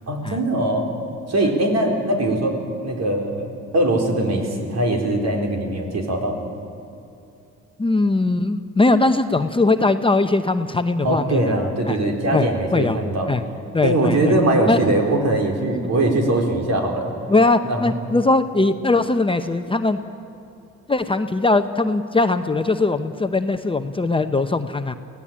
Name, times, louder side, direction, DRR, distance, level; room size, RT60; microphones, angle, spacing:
voice 1, 0.1-0.9 1.3-6.4 11.0-13.3 13.8-17.1 17.6-17.9, right 1 dB, 60° right, 2 dB, 4.2 m, -21 dB
voice 2, 7.8-11.6 11.9-12.0 12.3-12.5 12.7-13.0 13.3-13.4 13.7-14.3 14.7-14.8 17.3-20.0 20.9-24.9, left 2 dB, 15° left, 8 dB, 0.9 m, -20 dB
24.0 x 17.0 x 8.8 m, 2.7 s
cardioid pair, 90°, 30 cm